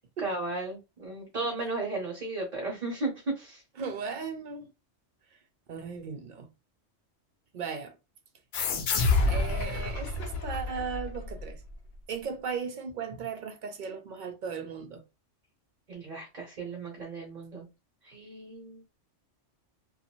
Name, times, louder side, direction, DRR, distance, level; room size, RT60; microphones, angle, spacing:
voice 1, 0.2-3.6 8.8-8.9 15.9-17.7 18.0-18.8, right 2 dB, 40° right, 0.8 m, -35 dB
voice 2, 3.8-4.7 5.3-5.4 5.7-6.5 7.5-8.0 9.2-11.6 12.1-15.0, right 5 dB, 60° right, 0.5 m, -37 dB
sound 1, 8.5-11.7, left 3 dB, 65° left, 0.7 m, -28 dB
2.5 x 2.3 x 2.9 m
omnidirectional pair, 1.2 m